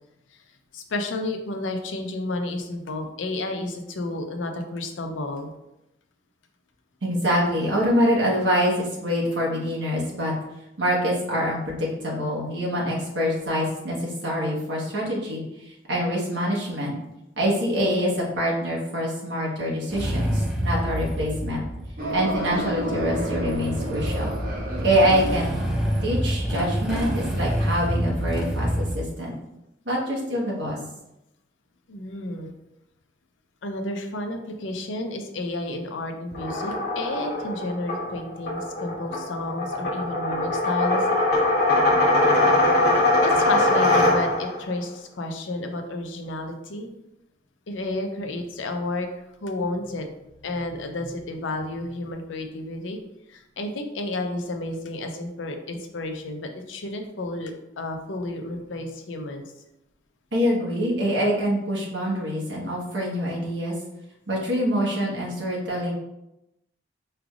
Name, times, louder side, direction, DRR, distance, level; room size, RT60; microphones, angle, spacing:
voice 1, 0.7-5.5 31.9-32.5 33.6-41.1 41.9-42.1 43.2-46.9 47.7-49.1 49.4-50.1 50.4-53.0 53.3-59.4, left 2 dB, 85° left, 5 dB, 0.6 m, -31 dB
voice 2, 7.0-10.3 10.8-16.9 17.4-21.6 22.1-24.4 24.8-25.6 26.0-29.3 29.8-30.8 60.3-63.7 64.3-65.9, equal, 65° right, -4 dB, 1.2 m, -25 dB
Motorcycle / Engine starting, 19.9-29.0, equal, 5° right, 0.6 m, -27 dB
sound 1, 22.0-26.3, right 1 dB, 50° right, 0.9 m, -32 dB
sound 2, 36.3-44.6, left 2 dB, 55° left, 1.2 m, -22 dB
4.9 x 3.2 x 2.4 m, 0.89 s
head